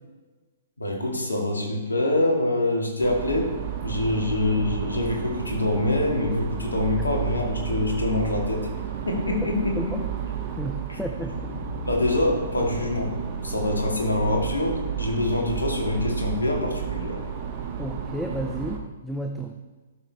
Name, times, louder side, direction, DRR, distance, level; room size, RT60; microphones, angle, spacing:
voice 1, 0.8-3.5 3.8-8.6 9.1-10.0 10.9-11.0 11.8-13.1 13.4-17.2, left 2 dB, 80° left, 0 dB, 2.1 m, -25 dB
sound 1, 3.0-18.8, right 8 dB, 40° right, 1.0 m, -32 dB
voice 2, 9.8-10.1 10.6-11.5 17.8-19.5, equal, ahead, 2 dB, 0.6 m, -32 dB
12.5 x 6.4 x 3.5 m, 1.3 s
figure-of-eight pair, 120°, 0 cm